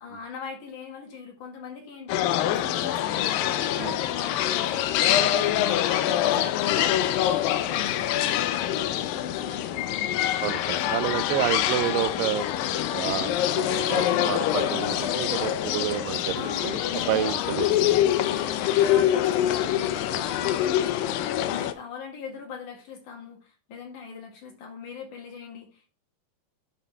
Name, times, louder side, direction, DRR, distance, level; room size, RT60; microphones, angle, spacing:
voice 1, 0.0-10.3 10.7-11.5 16.3-17.4 18.1-25.9, left 6 dB, 65° left, 1 dB, 3.1 m, -41 dB
sound 1, 2.1-21.7, left 12 dB, 90° left, 2.3 m, -25 dB
voice 2, 10.4-12.5 12.9-18.0 20.1-20.2, right 14 dB, 85° right, 14 dB, 2.2 m, -30 dB
11.0 x 4.1 x 3.5 m, 0.36 s
omnidirectional pair, 3.9 m